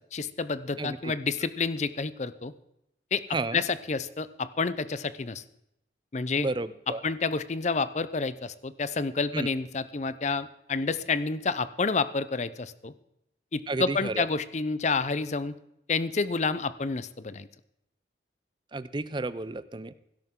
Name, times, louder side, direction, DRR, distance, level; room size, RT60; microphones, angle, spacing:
voice 1, 0.1-2.5 3.1-3.2 3.5-5.4 6.1-6.5 7.0-12.9 13.5-15.5 15.9-17.5, left 4 dB, 40° left, 15 dB, 0.6 m, -29 dB
voice 2, 6.4-7.0 9.3-9.5 13.7-14.3 18.7-19.9, right 2 dB, 25° right, 15 dB, 0.5 m, -32 dB
16.5 x 12.5 x 3.7 m, 0.82 s
head